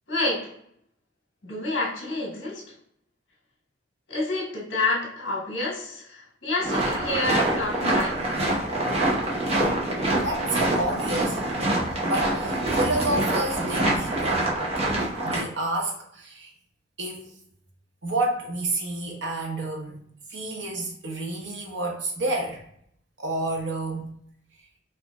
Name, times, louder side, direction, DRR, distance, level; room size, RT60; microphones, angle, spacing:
voice 1, 0.1-0.5 1.4-2.6 4.1-8.5, left 2 dB, 70° left, -4 dB, 1.4 m, -28 dB
sound 1, 6.6-15.4, right 1 dB, 35° right, 0.8 m, -25 dB
voice 2, 10.2-11.4 12.0-14.5 15.2-16.5 17.0-17.3 18.0-20.0 20.3-22.6 23.2-24.1, right 2 dB, 70° right, 0 dB, 1.0 m, -29 dB
4.5 x 2.6 x 2.3 m, 0.69 s
head